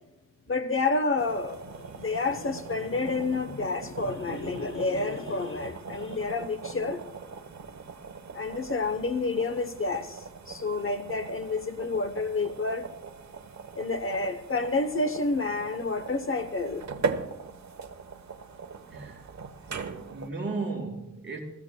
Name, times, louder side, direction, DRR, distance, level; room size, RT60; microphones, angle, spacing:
voice 1, 0.5-7.0 8.3-12.9 13.8-16.8, left 3 dB, 40° left, 0.9 m, -29 dB
sound 1, 1.2-20.3, right 5 dB, 55° right, 1.1 m, -40 dB
voice 2, 18.9-19.3 19.6-21.4, right 3 dB, 35° right, 4.3 m, -36 dB
29.5 x 15.5 x 2.2 m
wide cardioid pair, 125°, 33 cm